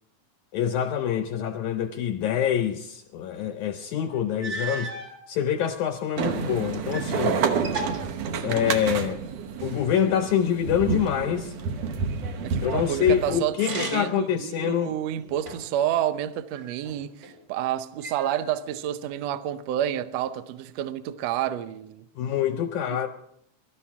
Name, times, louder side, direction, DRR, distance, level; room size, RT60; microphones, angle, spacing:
voice 1, 0.5-4.9 5.3-7.4 8.4-9.2 9.6-11.6 12.6-15.0 22.2-23.1, left 9 dB, 75° left, 1.9 m, -26 dB
sound 1, 3.8-3.9 4.4-5.2 5.9-7.2 7.4-9.0 13.5-14.3 14.8-15.8 16.5-17.3 18.0-18.8, right 2 dB, 30° right, 3.5 m, -36 dB
sound 2, 6.2-13.4, right 5 dB, 65° right, 1.8 m, -29 dB
voice 2, 12.4-22.0, right 11 dB, 80° right, 1.5 m, -29 dB
24.0 x 13.0 x 3.6 m
omnidirectional pair, 3.9 m